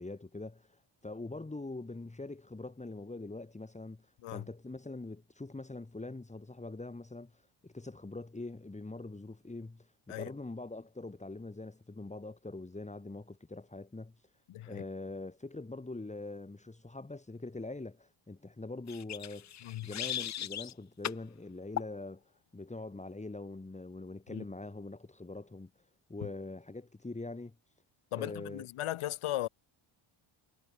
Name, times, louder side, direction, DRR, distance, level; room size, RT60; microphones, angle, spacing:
voice 1, 0.0-14.1 14.6-19.5 19.8-22.2 22.5-25.7 26.1-27.5 28.1-28.7, left 2 dB, 15° left, 3.2 m, -43 dB
voice 2, 14.5-14.8 19.6-19.9 24.3-24.4 26.2-26.3 28.1-29.5, left 14 dB, 75° left, 1.1 m, -37 dB
sound 1, 18.9-20.7 21.0-21.2 21.8-22.0, left 10 dB, 35° left, 0.4 m, -38 dB
wide cardioid pair, 145°, 50 cm